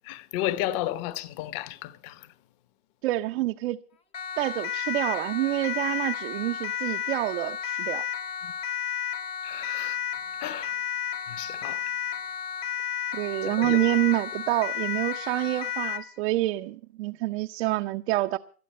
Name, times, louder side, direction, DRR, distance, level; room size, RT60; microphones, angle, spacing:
voice 1, 0.0-2.3 8.4-8.5 9.4-10.0 10.4-10.7 11.3-11.8 13.4-13.9, left 14 dB, 35° left, 1.1 m, -33 dB
voice 2, 3.0-3.8 4.4-8.0 13.1-18.4, right 17 dB, 45° right, 0.7 m, -27 dB
Siren, 4.1-16.1, left 9 dB, 15° left, 0.7 m, -32 dB
21.5 x 12.0 x 4.3 m
supercardioid pair, 150°, 48 cm